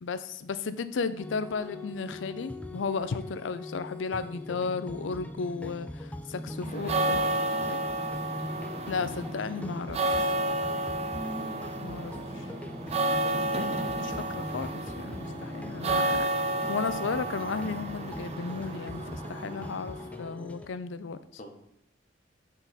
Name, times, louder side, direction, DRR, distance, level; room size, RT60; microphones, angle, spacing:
voice 1, 0.0-7.2 7.7-7.8 8.9-10.3 11.8-12.5 14.0-21.2, left 4 dB, 90° left, 13 dB, 0.5 m, -34 dB
sound 1, 1.2-20.7, left 1 dB, 5° left, 0.4 m, -41 dB
voice 2, 6.6-7.5 21.4-21.5, left 1 dB, 45° left, 2 dB, 1.1 m, -40 dB
sound 2, 6.6-20.2, right 2 dB, 35° right, 0.7 m, -31 dB
8.1 x 4.0 x 4.1 m, 0.77 s
head